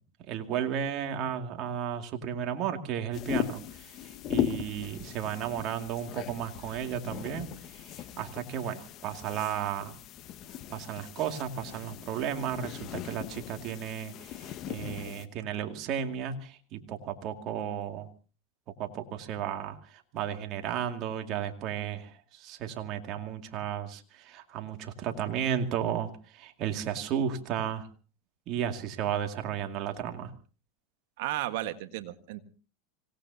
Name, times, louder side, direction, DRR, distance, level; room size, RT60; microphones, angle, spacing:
voice 1, 0.3-9.9 10.7-18.1 18.8-27.9 28.5-30.3, right 9 dB, 50° right, 4 dB, 2.3 m, -34 dB
sound 1, 3.1-15.3, left 11 dB, 45° left, 1.5 m, -38 dB
voice 2, 31.2-32.4, right 15 dB, 70° right, 10 dB, 1.6 m, -34 dB
26.0 x 18.0 x 2.8 m, 0.37 s
hypercardioid pair, 110°, 0 cm